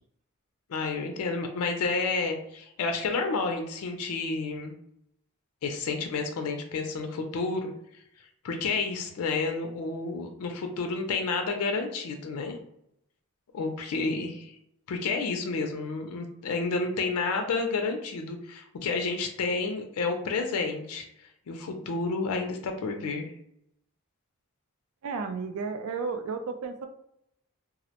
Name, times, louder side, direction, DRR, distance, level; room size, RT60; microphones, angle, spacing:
voice 1, 0.7-4.7 5.6-7.7 8.4-12.6 13.5-14.5 14.9-21.1 21.5-23.3, left 4 dB, 90° left, 4 dB, 0.4 m, -30 dB
voice 2, 25.0-26.9, right 4 dB, 80° right, 6 dB, 0.4 m, -33 dB
2.4 x 2.0 x 2.8 m, 0.76 s
head